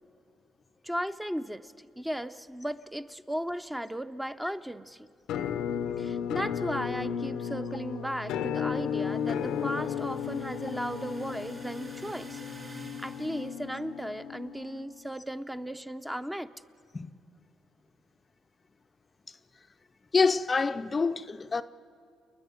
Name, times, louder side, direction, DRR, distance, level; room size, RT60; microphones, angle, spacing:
voice 1, 0.8-5.1 6.0-12.4 13.0-16.5, equal, 5° right, 0.6 m, -36 dB
Musical instrument, 5.3-15.1, left 8 dB, 90° left, 0.7 m, -34 dB
sound 1, 8.8-13.7, right 3 dB, 30° right, 2.8 m, -50 dB
voice 2, 20.1-21.6, left 4 dB, 30° left, 0.5 m, -26 dB
29.5 x 10.0 x 9.5 m
cardioid pair, 90°, 0 cm